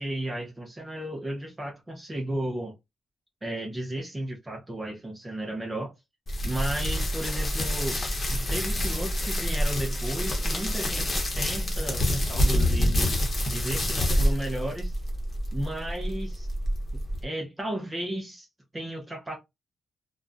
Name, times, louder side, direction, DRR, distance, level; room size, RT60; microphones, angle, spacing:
voice 1, 0.0-2.7 3.4-5.9 6.4-8.0 8.3-13.1 13.5-15.0 15.5-16.5 17.2-18.5 18.7-19.4, right 1 dB, 15° right, 0.5 m, -34 dB
sound 1, 6.3-17.2, equal, 35° left, 0.9 m, -27 dB
2.4 x 2.2 x 2.3 m
cardioid pair, 115°, 0 cm